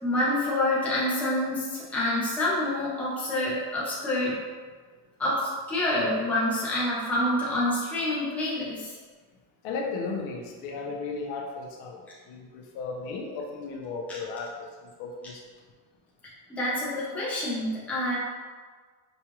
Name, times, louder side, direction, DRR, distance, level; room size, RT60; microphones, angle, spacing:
voice 1, 0.0-4.3 5.2-8.9 16.5-18.2, left 1 dB, 5° left, -8 dB, 0.5 m, -27 dB
voice 2, 9.6-12.0 12.3-14.5 15.0-15.4, left 4 dB, 85° left, 0 dB, 0.9 m, -35 dB
5.3 x 2.3 x 2.9 m, 1.5 s
cardioid pair, 180°, 47 cm